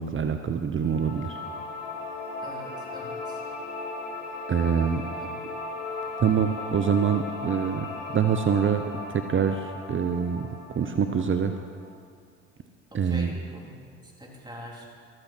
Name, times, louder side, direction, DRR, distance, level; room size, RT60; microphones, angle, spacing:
voice 1, 0.0-1.4 4.5-5.0 6.2-7.9 8.1-8.8 9.1-10.5 10.7-11.5 12.9-13.3, right 7 dB, 35° right, 8 dB, 0.8 m, -25 dB
sound 1, 0.8-11.9, left 3 dB, 80° left, 2.6 m, -37 dB
voice 2, 2.4-3.4 5.2-5.3 6.1-6.2 12.9-13.7 14.0-14.9, equal, 10° right, -2 dB, 3.6 m, -44 dB
14.0 x 13.5 x 4.5 m, 2.1 s
hypercardioid pair, 65°, 37 cm